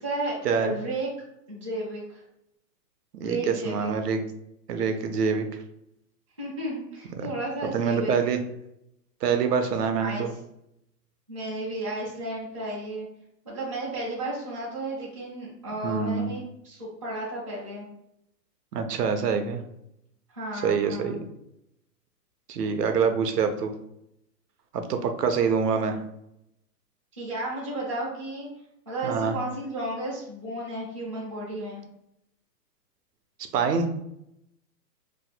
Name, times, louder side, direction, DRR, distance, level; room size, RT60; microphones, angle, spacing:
voice 1, 0.0-1.1 1.5-2.2 3.2-3.9 6.4-8.3 10.0-10.3 11.3-13.1 13.4-17.9 20.3-21.2 27.2-28.5 28.9-31.8, right 1 dB, 20° right, -9 dB, 0.4 m, -33 dB
voice 2, 3.1-4.2 4.7-5.5 7.2-7.3 7.7-8.4 9.2-10.3 15.8-16.3 18.7-19.6 20.6-21.2 22.5-23.7 24.7-26.0 29.0-29.4 33.5-33.9, right 6 dB, 70° right, 7 dB, 0.7 m, -25 dB
2.6 x 2.1 x 4.0 m, 0.80 s
hypercardioid pair, 165°, 49 cm